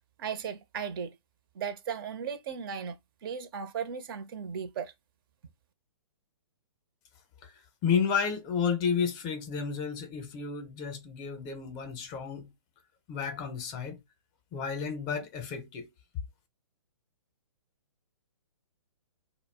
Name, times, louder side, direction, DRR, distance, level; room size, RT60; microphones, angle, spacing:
voice 1, 0.2-1.2 1.5-4.9, right 7 dB, 45° right, 0.5 m, -36 dB
voice 2, 7.8-12.5 13.1-14.0 14.5-15.9, left 6 dB, 25° left, 0.6 m, -31 dB
2.3 x 2.0 x 3.3 m
hypercardioid pair, 130°, 16 cm